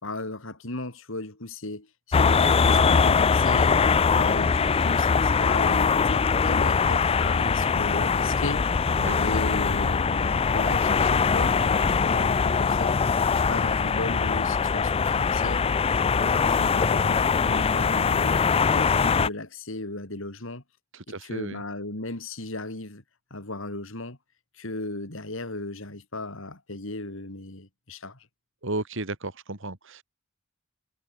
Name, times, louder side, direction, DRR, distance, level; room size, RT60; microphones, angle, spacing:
voice 1, 0.0-15.7 16.2-18.5 18.7-20.6 21.2-23.0 23.3-24.2 24.5-28.3, left 2 dB, 70° left, 3.6 m, -36 dB
sound 1, 2.1-19.3, left 5 dB, 30° left, 0.4 m, -22 dB
voice 2, 20.9-21.6 28.6-30.0, right 2 dB, 65° right, 3.2 m, -33 dB
head